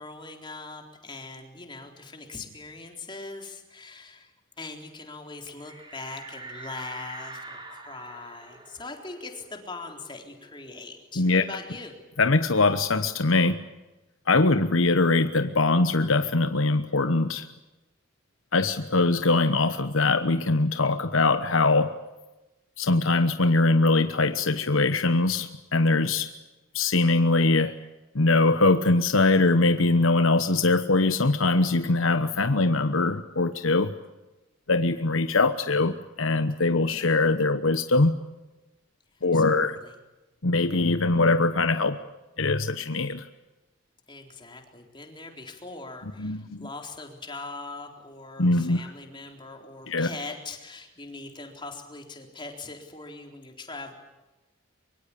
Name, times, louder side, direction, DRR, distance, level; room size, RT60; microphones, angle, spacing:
voice 1, 0.0-12.0 39.3-39.9 44.1-53.9, left 3 dB, 25° left, 3 dB, 3.9 m, -41 dB
sound 1, 5.6-10.8 11.1-11.2 11.6-13.2, right 2 dB, 25° right, 4.0 m, -45 dB
voice 2, 12.2-13.6 14.3-17.5 18.5-22.0 22.8-26.3 26.7-27.7 28.1-33.9 34.7-38.1 39.2-39.8 40.4-42.0 42.4-43.2 46.2-46.6 48.4-48.8 49.9-50.1, left 3 dB, 90° left, 9 dB, 1.1 m, -22 dB
24.0 x 24.0 x 8.6 m, 1.0 s
head